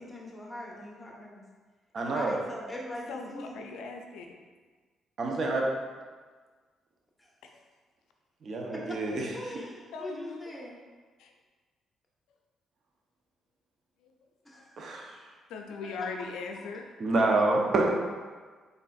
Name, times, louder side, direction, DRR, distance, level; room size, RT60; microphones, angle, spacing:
voice 1, 0.0-1.4 2.1-3.7 8.7-9.0 9.3-10.8 14.4-14.7 16.0-16.1, left 1 dB, 10° left, -3 dB, 1.0 m, -41 dB
voice 2, 1.9-2.4 5.2-5.7 8.4-9.4 14.8-15.1 17.0-17.9, right 2 dB, 55° right, 0 dB, 0.6 m, -27 dB
voice 3, 3.1-4.3 9.9-10.5 11.2-11.3 15.5-16.9, left 4 dB, 85° left, 3 dB, 0.4 m, -39 dB
4.0 x 3.3 x 2.3 m, 1.4 s
supercardioid pair, 65°, 0 cm